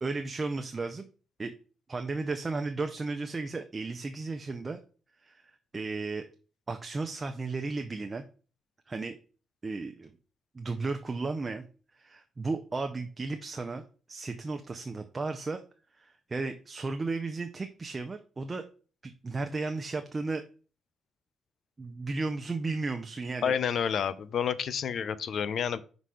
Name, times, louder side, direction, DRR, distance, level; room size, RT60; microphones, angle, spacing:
voice 1, 0.0-1.1 1.4-1.5 1.9-4.8 5.2-6.3 6.7-8.2 8.9-9.2 9.6-10.1 10.5-11.7 12.0-15.6 16.0-18.6 19.0-20.4 21.8-23.5, right 3 dB, 25° right, 6 dB, 0.6 m, -34 dB
voice 2, 23.4-25.8, left 7 dB, 60° left, 16 dB, 0.5 m, -29 dB
5.6 x 4.0 x 4.9 m, 0.38 s
cardioid pair, 90°, 0 cm